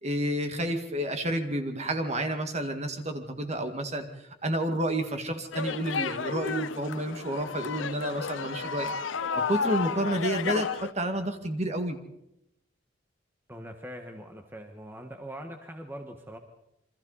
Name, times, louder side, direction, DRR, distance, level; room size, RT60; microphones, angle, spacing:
voice 1, 0.0-4.1 4.4-8.9 9.4-12.0, right 1 dB, 35° right, 6 dB, 2.0 m, -30 dB
sound 1, 5.5-10.9, left 5 dB, 85° left, 0.7 m, -32 dB
voice 2, 13.5-16.4, equal, 10° right, 4 dB, 1.5 m, -42 dB
28.0 x 24.5 x 4.1 m, 0.81 s
head